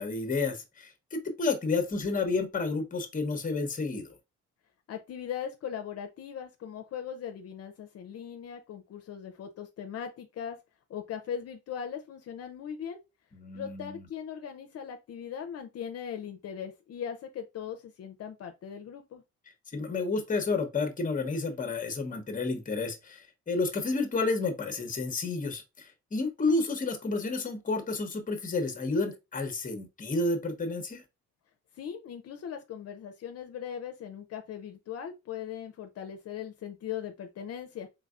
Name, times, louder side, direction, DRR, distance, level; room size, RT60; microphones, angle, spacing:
voice 1, 0.0-4.1 13.3-14.0 19.7-31.0, left 3 dB, 30° left, 0.9 m, -31 dB
voice 2, 4.9-10.6 10.9-13.0 13.5-19.2 31.7-37.9, left 8 dB, 60° left, 0.6 m, -39 dB
3.9 x 3.6 x 2.4 m
cardioid pair, 100°, 29 cm